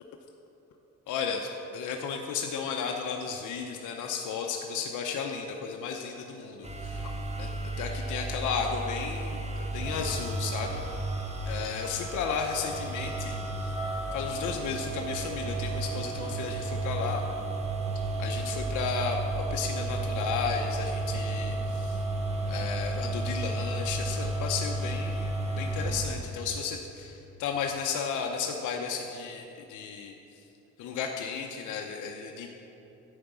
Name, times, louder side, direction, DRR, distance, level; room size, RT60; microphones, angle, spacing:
voice 1, 1.1-7.1 7.4-7.5 7.8-10.8 11.5-13.4 14.1-17.3 18.2-22.0 22.5-30.1 30.8-32.5, left 6 dB, 80° left, 2 dB, 0.8 m, -34 dB
sound 1, 6.6-26.2, right 2 dB, 20° right, 1.5 m, -32 dB
11.0 x 4.9 x 8.0 m, 3.0 s
cardioid pair, 90°, 30 cm